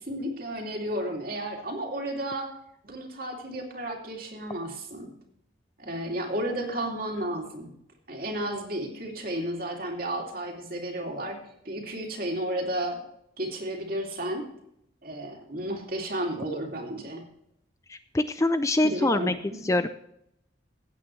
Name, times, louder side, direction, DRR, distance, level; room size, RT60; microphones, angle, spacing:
voice 1, 0.0-2.5 2.8-5.1 5.8-7.7 8.1-13.0 13.4-14.5 15.0-17.3 18.8-19.6, right 1 dB, 45° right, 1 dB, 2.5 m, -33 dB
voice 2, 17.9-19.3 19.6-19.9, left 2 dB, 15° left, 11 dB, 0.4 m, -24 dB
16.0 x 8.8 x 3.2 m, 0.75 s
head